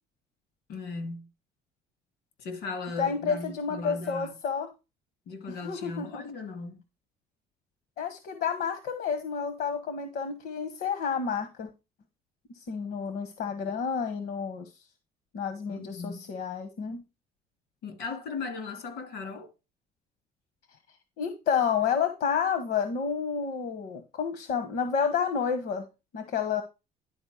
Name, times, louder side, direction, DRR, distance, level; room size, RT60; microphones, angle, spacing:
voice 1, 0.7-1.3 2.4-4.3 5.3-6.8 15.7-16.2 17.8-19.5, left 4 dB, 85° left, 2.8 m, -37 dB
voice 2, 3.0-4.7 5.5-6.2 8.0-11.7 12.5-14.7 15.3-17.0 21.2-25.9 26.1-26.6, left 6 dB, 70° left, 1.2 m, -30 dB
11.0 x 4.3 x 4.9 m
cardioid pair, 110°, 17 cm